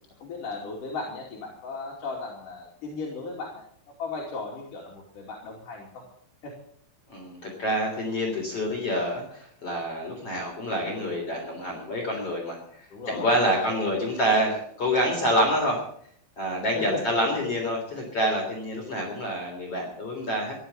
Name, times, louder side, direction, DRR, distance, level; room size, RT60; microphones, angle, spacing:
voice 1, 0.2-6.0 6.4-6.5 12.9-13.9 16.7-17.0, left 3 dB, 50° left, -2 dB, 3.9 m, -36 dB
voice 2, 7.1-15.8 16.4-20.5, equal, 35° left, 0 dB, 3.9 m, -27 dB
15.5 x 12.0 x 7.0 m, 0.64 s
omnidirectional pair, 5.4 m